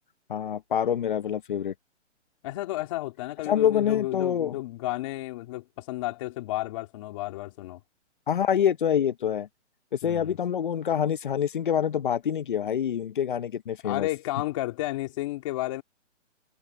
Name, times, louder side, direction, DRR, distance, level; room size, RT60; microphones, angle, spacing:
voice 1, 0.3-1.7 3.5-4.6 8.3-9.5 10.0-14.1, left 9 dB, 45° left, 0.9 m, -26 dB
voice 2, 2.4-7.8 10.0-10.4 13.8-15.8, left 17 dB, 25° left, 2.8 m, -32 dB
hypercardioid pair, 170°, 37 cm